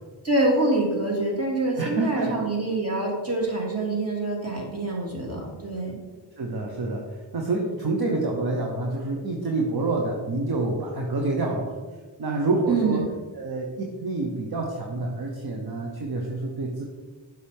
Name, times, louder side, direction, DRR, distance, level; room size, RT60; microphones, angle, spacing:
voice 1, 0.2-6.0 12.7-13.0, right 2 dB, 30° right, -2 dB, 2.4 m, -25 dB
voice 2, 1.8-2.3 6.4-7.0 7.3-11.8 12.2-13.0 13.4-13.7 14.0-16.8, right 2 dB, 55° right, 0 dB, 1.0 m, -27 dB
7.1 x 6.0 x 3.6 m, 1.4 s
cardioid pair, 60°, 46 cm